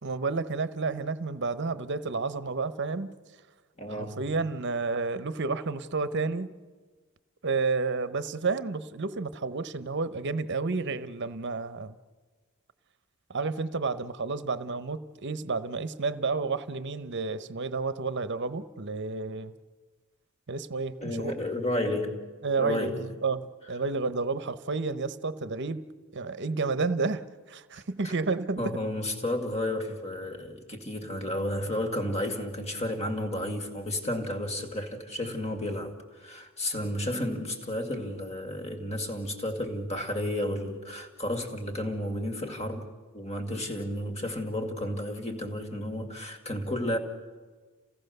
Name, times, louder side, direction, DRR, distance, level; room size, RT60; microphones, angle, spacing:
voice 1, 0.0-3.1 3.9-6.5 7.4-12.0 13.3-19.5 20.5-21.4 22.4-25.8 26.1-27.2 27.5-28.8 35.2-35.3, right 4 dB, 50° right, 0.9 m, -31 dB
voice 2, 3.8-4.2 21.0-22.2 22.6-23.1 28.0-28.1 28.6-42.9 43.1-47.0, left 1 dB, 30° left, 2.2 m, -32 dB
29.0 x 17.0 x 6.7 m
head